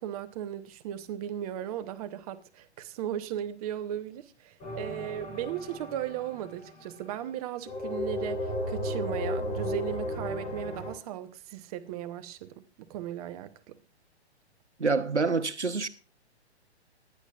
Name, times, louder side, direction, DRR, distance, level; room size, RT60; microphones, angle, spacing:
voice 1, 0.0-13.8, right 11 dB, 35° right, 1.1 m, -37 dB
sound 1, 4.6-7.0 7.7-10.9, left 1 dB, 20° left, 3.8 m, -34 dB
voice 2, 14.8-15.9, right 4 dB, 90° right, 1.2 m, -27 dB
22.5 x 10.5 x 2.5 m
figure-of-eight pair, 120°, 34 cm